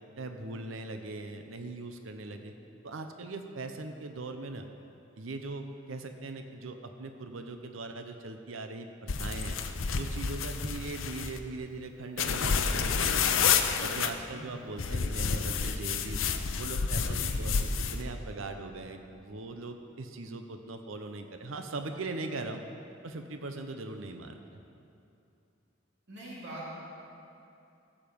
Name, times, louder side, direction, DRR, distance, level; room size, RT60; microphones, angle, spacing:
voice 1, 0.2-2.5 2.8-4.7 5.2-9.6 10.0-13.5 13.8-16.2 16.6-22.6 23.0-24.6, right 3 dB, 90° right, 6 dB, 0.7 m, -40 dB
sound 1, 9.1-11.4 12.2-14.1 14.8-18.0, left 6 dB, 90° left, 0.6 m, -29 dB
voice 2, 26.1-26.7, right 1 dB, 65° right, -7 dB, 2.6 m, -43 dB
15.0 x 7.4 x 5.1 m, 2.7 s
head